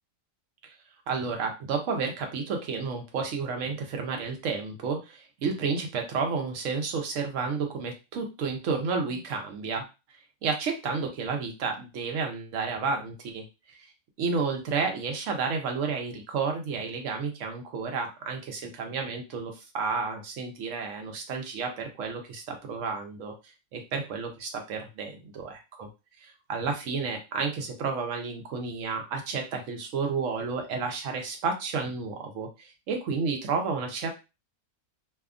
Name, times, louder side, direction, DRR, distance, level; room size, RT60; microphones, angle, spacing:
voice 1, 1.1-9.8 10.4-13.8 14.2-23.3 23.7-25.9 26.2-34.1, right 5 dB, 70° right, 3 dB, 1.0 m, -31 dB
2.7 x 2.3 x 2.4 m, 0.27 s
omnidirectional pair, 1.4 m